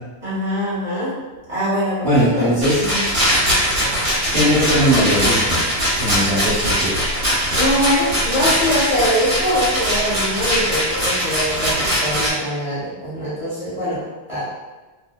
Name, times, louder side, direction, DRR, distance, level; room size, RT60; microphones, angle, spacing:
voice 1, 0.2-1.1 1.5-2.5 2.8-3.0 7.6-14.0 14.3-14.4, equal, ahead, -12 dB, 1.0 m, -23 dB
voice 2, 2.0-2.8 4.3-5.6 6.0-7.0, equal, 30° right, -13 dB, 1.0 m, -19 dB
Rattle, 2.6-12.3, equal, 55° right, 1.0 m, -21 dB
2.6 x 2.1 x 2.2 m, 1.2 s
omnidirectional pair, 1.4 m